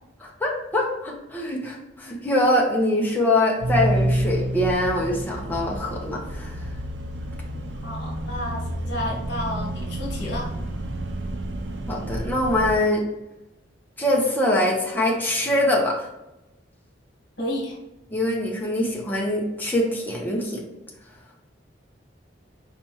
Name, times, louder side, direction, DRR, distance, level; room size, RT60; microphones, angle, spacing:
voice 1, 0.2-6.6 11.9-13.0 14.0-16.1 18.1-20.6, left 1 dB, 10° left, -2 dB, 0.8 m, -23 dB
sound 1, 3.6-12.8, right 1 dB, 75° right, 0.6 m, -29 dB
voice 2, 7.8-10.5 17.4-17.8, left 1 dB, 65° left, -4 dB, 1.4 m, -31 dB
4.3 x 3.4 x 2.9 m, 0.94 s
head